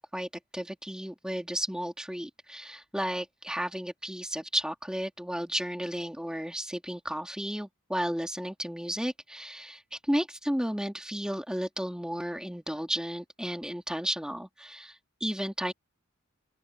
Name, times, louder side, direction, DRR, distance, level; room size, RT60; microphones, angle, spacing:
voice 1, 0.0-15.7, equal, 5° right, 2.9 m, -33 dB
open air
head